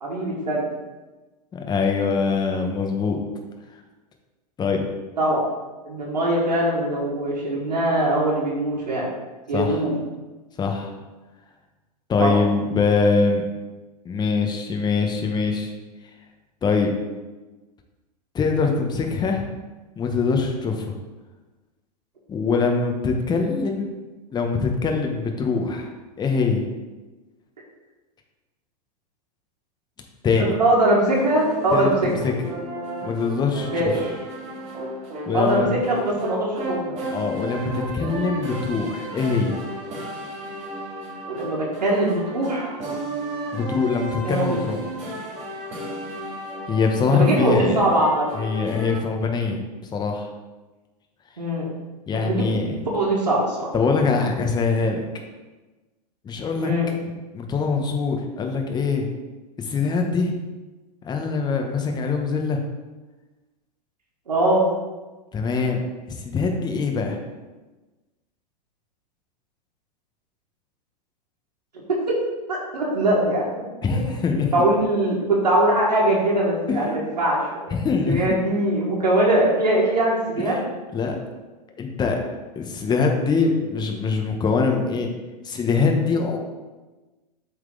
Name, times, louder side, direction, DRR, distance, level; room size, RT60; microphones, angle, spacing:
voice 1, 0.0-0.7 5.2-5.4 5.9-9.1 9.5-9.9 12.2-12.4 30.4-32.1 33.7-34.1 35.3-37.0 41.3-42.7 44.2-44.6 47.1-48.3 51.4-51.7 52.2-52.4 52.9-53.7 56.6-56.9 64.3-64.7 71.9-72.2 72.5-73.4 73.9-74.0 74.5-77.7 78.1-80.6, right 1 dB, 90° right, -4 dB, 1.7 m, -21 dB
voice 2, 1.5-3.2 4.6-4.8 9.5-9.8 10.6-10.9 12.1-13.4 14.0-15.7 16.6-16.9 18.3-19.4 20.0-21.0 22.3-24.0 24.3-25.9 26.2-26.6 30.2-30.5 31.7-32.3 33.0-33.9 35.3-35.7 37.1-39.5 43.5-44.8 46.7-47.9 48.3-49.6 49.9-50.3 52.1-52.8 53.7-55.0 56.2-56.7 57.3-59.1 59.6-60.3 61.0-62.6 65.3-65.8 66.1-67.2 73.8-74.5 76.7-77.1 77.7-78.2 80.4-80.6 80.9-81.2 81.8-82.2 82.5-85.1 85.4-86.4, left 4 dB, 20° left, 3 dB, 1.0 m, -23 dB
sound 1, 31.1-49.0, right 1 dB, 30° right, 2.2 m, -33 dB
7.5 x 4.0 x 3.8 m, 1.2 s
hypercardioid pair, 105°, 21 cm